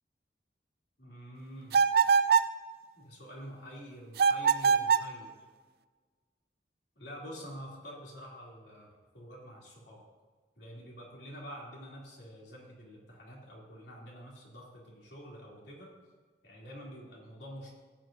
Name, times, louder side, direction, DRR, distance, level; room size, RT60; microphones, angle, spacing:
voice 1, 1.0-1.9 3.0-5.3 7.0-8.9 9.1-10.0 10.6-15.9 16.4-17.7, equal, 80° left, -3 dB, 2.7 m, -47 dB
sound 1, 1.7-2.6 4.2-5.1, right 6 dB, 60° right, 0.3 m, -24 dB
15.5 x 8.1 x 2.6 m, 1.5 s
head